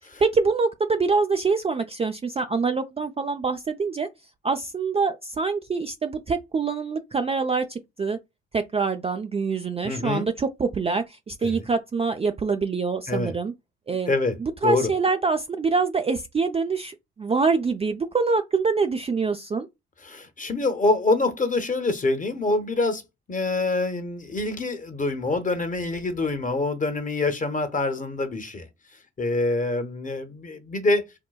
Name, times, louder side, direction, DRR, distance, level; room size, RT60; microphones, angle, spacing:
voice 1, 0.2-4.1 4.4-8.2 8.5-13.5 13.9-14.1 14.4-19.7, right 4 dB, 20° right, 0.4 m, -25 dB
voice 2, 9.8-10.3 11.4-11.7 13.1-13.3 14.1-14.4 14.6-14.9 20.0-23.0 23.3-28.7 29.2-31.0, left 2 dB, 25° left, 1.0 m, -25 dB
4.6 x 2.2 x 2.3 m
hypercardioid pair, 50°, 30 cm